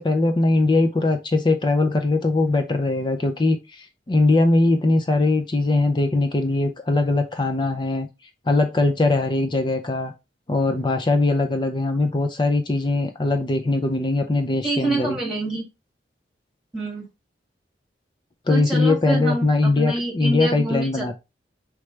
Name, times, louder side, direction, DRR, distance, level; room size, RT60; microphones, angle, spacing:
voice 1, 0.0-8.1 8.5-10.1 10.5-15.2 18.5-21.1, left 2 dB, 25° left, 0.4 m, -21 dB
voice 2, 14.6-15.6 16.7-17.1 18.5-21.1, right 2 dB, 5° right, 1.5 m, -27 dB
4.8 x 3.2 x 3.2 m
head